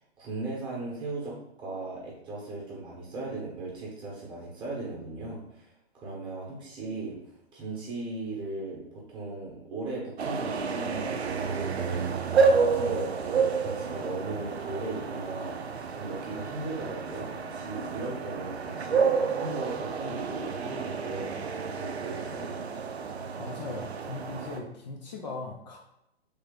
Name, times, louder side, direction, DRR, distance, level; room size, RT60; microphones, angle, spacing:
voice 1, 0.2-5.7 5.9-7.2 7.5-22.5, right 2 dB, 15° right, -4 dB, 1.0 m, -37 dB
sound 1, 10.2-24.6, right 5 dB, 80° right, 0.5 m, -30 dB
voice 2, 23.4-25.8, left 3 dB, 40° left, 0 dB, 0.6 m, -39 dB
3.4 x 2.7 x 3.8 m, 0.82 s
figure-of-eight pair, 125°, 32 cm